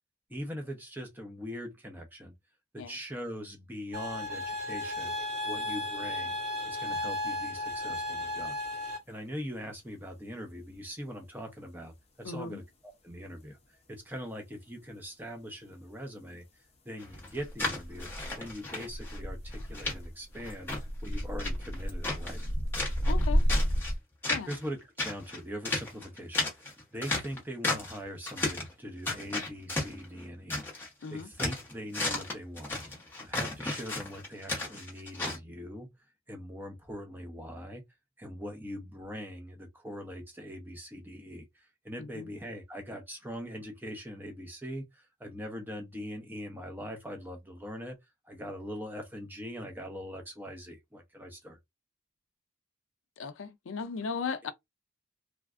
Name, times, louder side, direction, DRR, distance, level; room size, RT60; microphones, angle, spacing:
voice 1, 0.3-2.3 2.7-5.1 5.4-6.4 6.6-13.6 13.9-16.4 16.8-18.1 18.4-22.5 24.5-30.6 31.1-32.7 33.2-35.9 36.3-37.8 38.2-48.0 48.2-51.6, equal, 10° right, 0.7 m, -42 dB
sound 1, 3.9-9.0, left 1 dB, 75° right, 1.9 m, -34 dB
sound 2, 7.9-8.0 10.7-10.8 17.1-24.0, equal, 30° left, 0.6 m, -32 dB
voice 2, 12.2-12.6 23.1-23.4 24.3-24.5 31.0-31.3 42.0-42.3 53.2-54.5, left 5 dB, 80° left, 0.5 m, -37 dB
sound 3, 17.0-19.2 19.5-19.9 20.3-22.5 22.7-23.9 24.2-24.7 25.0-28.0 28.2-28.7 29.1-30.9 31.2-35.4, left 2 dB, 10° left, 1.0 m, -34 dB
3.2 x 2.4 x 2.4 m
head